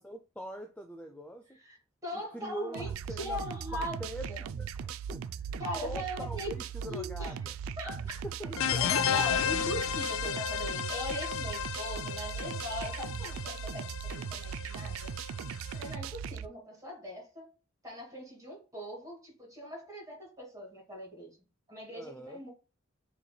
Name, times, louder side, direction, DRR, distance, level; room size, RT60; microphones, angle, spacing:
voice 1, 0.0-1.5 2.1-3.4 3.7-4.3 4.6-5.6 5.8-7.6 7.9-8.0 8.2-8.8 21.9-22.4, equal, 5° left, 0.4 m, -43 dB
voice 2, 2.0-2.9 3.2-4.0 4.3-4.5 5.6-6.5 6.9-7.3 7.8-8.2 8.8-13.9 14.1-15.1 15.7-17.5 17.8-21.3 21.7-22.5, equal, 15° right, 2.4 m, -40 dB
sound 1, 2.7-16.5, right 7 dB, 75° right, 0.3 m, -39 dB
sound 2, 8.6-15.9, left 9 dB, 75° left, 0.4 m, -33 dB
6.8 x 3.1 x 2.2 m
head